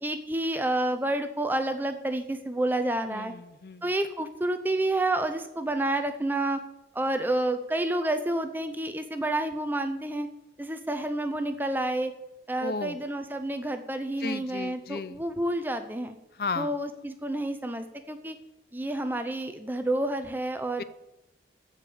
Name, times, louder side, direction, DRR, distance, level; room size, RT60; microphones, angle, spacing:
voice 1, 0.0-3.3 3.8-6.6 6.9-10.3 10.6-12.1 12.5-16.2 16.6-18.4 18.7-20.8, right 1 dB, 10° right, 8 dB, 0.7 m, -29 dB
voice 2, 3.0-3.9 12.6-13.0 14.2-15.2 16.3-16.8 20.8-20.9, left 4 dB, 55° left, 15 dB, 0.6 m, -35 dB
15.0 x 5.1 x 8.5 m, 0.90 s
head